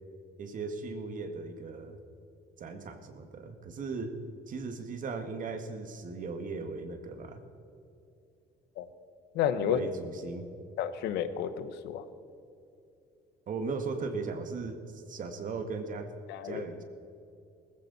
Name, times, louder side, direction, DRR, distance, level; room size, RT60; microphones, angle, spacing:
voice 1, 0.4-2.0 2.6-4.2 4.5-7.4 9.6-10.5 13.5-16.1 16.4-16.8, right 4 dB, 50° right, 7 dB, 2.0 m, -37 dB
voice 2, 9.3-9.8 10.8-12.0 16.3-16.6, left 10 dB, 85° left, 11 dB, 1.1 m, -31 dB
19.5 x 15.0 x 4.2 m, 2.7 s
cardioid pair, 110°, 17 cm